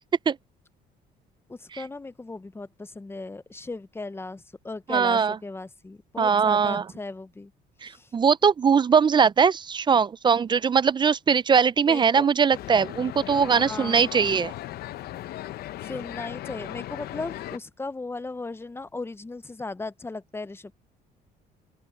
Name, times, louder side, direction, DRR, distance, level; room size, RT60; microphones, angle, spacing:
voice 1, 1.5-7.5 7.8-8.1 11.9-12.4 13.5-14.1 15.8-20.7, left 3 dB, 15° left, 0.8 m, -37 dB
voice 2, 4.9-5.4 6.2-6.8 7.8-14.5, right 6 dB, 25° right, 0.4 m, -21 dB
sound 1, 12.5-17.6, left 14 dB, 70° left, 0.7 m, -37 dB
open air
cardioid pair, 110°, 17 cm